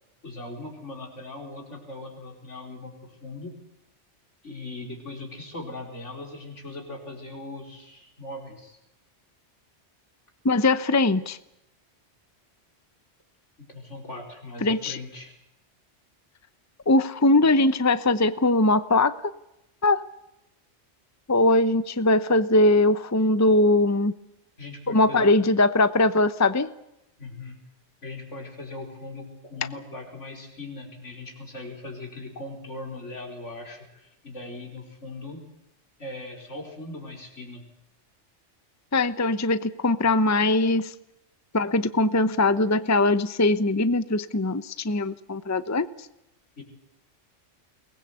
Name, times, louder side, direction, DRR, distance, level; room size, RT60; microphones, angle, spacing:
voice 1, 0.2-3.6 4.4-8.8 13.6-15.3 24.6-25.4 27.2-27.6 28.0-35.4 36.0-37.6 46.6-46.7, left 2 dB, 75° left, 2 dB, 5.3 m, -39 dB
voice 2, 10.4-11.4 14.6-15.0 16.9-19.1 19.8-20.0 21.3-24.1 24.9-26.7 38.9-40.9 41.5-45.9, left 2 dB, 15° left, 14 dB, 0.8 m, -21 dB
23.0 x 20.0 x 8.3 m, 0.86 s
omnidirectional pair, 1.2 m